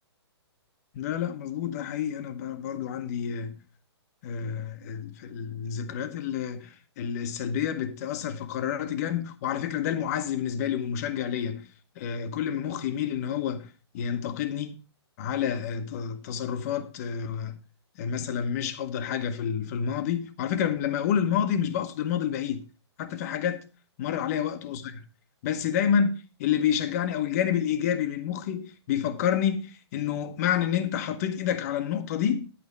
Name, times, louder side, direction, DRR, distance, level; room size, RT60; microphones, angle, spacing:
voice 1, 0.9-3.6 4.2-11.7 12.0-14.8 15.2-17.6 18.0-22.6 23.0-23.6 24.0-25.0 25.4-32.5, left 8 dB, 35° left, 1.1 m, -29 dB
10.5 x 8.5 x 3.3 m
hypercardioid pair, 155°, 14 cm